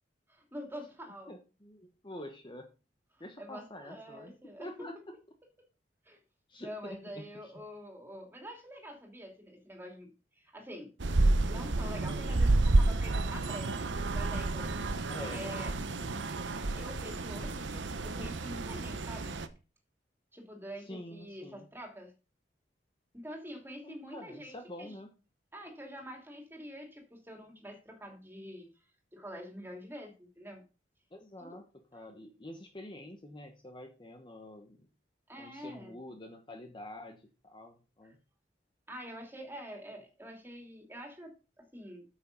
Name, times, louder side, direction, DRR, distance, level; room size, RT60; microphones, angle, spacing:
voice 1, 0.3-1.3 3.2-4.9 6.1-6.2 6.6-10.1 10.4-10.9 11.5-14.7 15.3-15.7 16.5-19.4 20.3-22.1 23.1-24.9 25.5-28.7 29.1-30.6 31.4-31.6 35.3-35.9 38.9-41.3 41.6-42.0, equal, 10° right, 2 dB, 2.9 m, -46 dB
voice 2, 1.3-2.7 3.2-5.0 6.5-7.5 15.1-16.3 20.9-21.6 23.8-25.1 31.1-34.9 35.4-38.2, left 1 dB, 25° left, 4 dB, 1.1 m, -47 dB
sound 1, 11.0-19.5, right 2 dB, 90° right, 0.9 m, -30 dB
9.1 x 7.1 x 5.3 m, 0.32 s
head